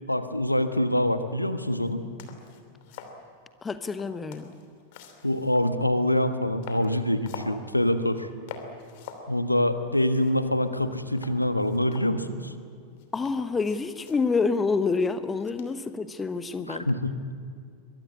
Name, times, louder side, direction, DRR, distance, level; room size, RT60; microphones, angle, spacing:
voice 1, 0.1-2.0 5.2-8.3 9.3-12.5 16.7-17.1, left 1 dB, 85° left, 10 dB, 1.3 m, -25 dB
sound 1, 1.9-2.0 2.2-3.2 3.9-5.7 6.1-6.2 6.6-7.6 8.0-8.2 8.5-9.3 9.6-9.7 9.9-10.8 11.2-12.5 13.0-14.3 15.6-15.9, left 6 dB, 50° left, 3.0 m, -45 dB
voice 2, 3.6-4.5 13.1-16.9, left 4 dB, 15° left, 12 dB, 1.1 m, -27 dB
23.0 x 22.0 x 8.7 m, 2.4 s
figure-of-eight pair, 90°, 0 cm